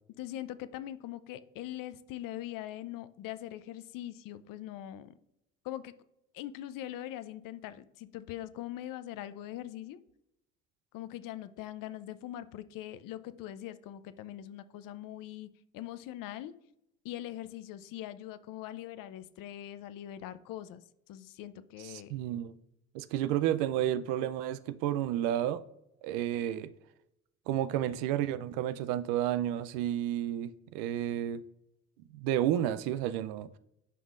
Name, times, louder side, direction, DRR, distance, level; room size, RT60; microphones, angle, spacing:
voice 1, 0.2-5.1 5.6-5.9 6.3-10.0 10.9-16.5 17.0-22.1, left 13 dB, 70° left, 0.6 m, -42 dB
voice 2, 21.8-22.5 22.9-25.6 26.0-26.7 27.5-31.4 32.1-33.5, right 11 dB, 85° right, 0.5 m, -31 dB
9.4 x 5.4 x 2.5 m
supercardioid pair, 70°, 34 cm